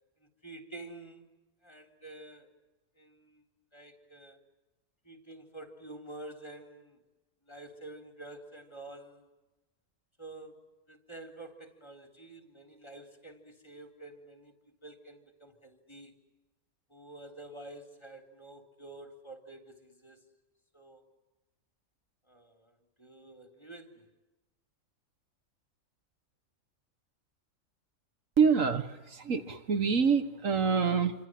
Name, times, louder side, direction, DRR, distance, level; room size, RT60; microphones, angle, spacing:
voice 1, 0.2-1.3 1.6-2.5 3.0-3.4 3.7-4.4 5.0-7.0 7.4-9.3 10.2-14.5 14.8-16.1 16.9-20.2 20.7-21.0 22.3-24.1, right 2 dB, 20° left, 3 dB, 3.7 m, -49 dB
voice 2, 28.4-31.1, right 6 dB, 70° right, 9 dB, 1.8 m, -26 dB
28.5 x 25.0 x 7.8 m, 1.1 s
omnidirectional pair, 1.4 m